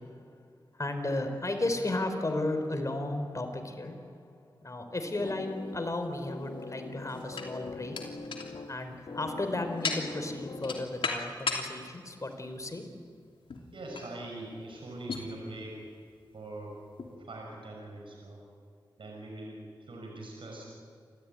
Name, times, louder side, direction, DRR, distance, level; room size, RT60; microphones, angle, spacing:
voice 1, 0.0-8.4 8.7-13.1, left 2 dB, 35° left, 7 dB, 3.9 m, -34 dB
sound 1, 5.2-6.3 6.9-11.7 12.3-12.4 13.5-13.7 13.9-14.2 15.1-15.3 16.1-16.2 17.0-17.1, left 4 dB, 75° left, 3.0 m, -36 dB
sound 2, 5.2-11.2, left 3 dB, 60° left, 2.0 m, -43 dB
voice 2, 13.7-15.9 16.3-16.8 17.1-18.4 19.0-20.6, right 2 dB, 70° right, 0 dB, 6.0 m, -43 dB
28.5 x 14.0 x 9.8 m, 2.1 s
cardioid pair, 50°, 9 cm